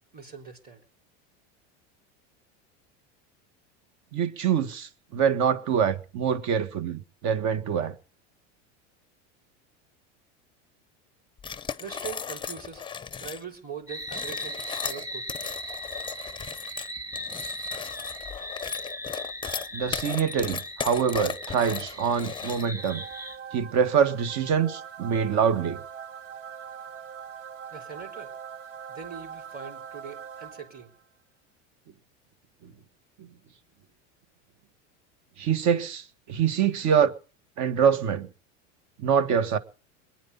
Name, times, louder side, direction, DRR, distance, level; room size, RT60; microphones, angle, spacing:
voice 1, 0.1-0.8 11.8-12.9 13.2-15.3 27.7-28.3 28.9-30.9, right 6 dB, 25° right, 3.9 m, -41 dB
voice 2, 4.1-7.9 19.7-23.0 23.5-25.8 33.2-33.3 35.4-37.1 37.6-38.3 39.0-39.6, right 7 dB, 50° right, 1.7 m, -25 dB
sound 1, 11.4-13.4 14.0-22.9, left 7 dB, 15° left, 0.7 m, -36 dB
sound 2, 13.9-23.4, left 1 dB, 10° right, 1.9 m, -38 dB
sound 3, 22.8-31.0, right 7 dB, 90° right, 1.5 m, -42 dB
21.5 x 10.0 x 5.5 m
supercardioid pair, 110°, 37 cm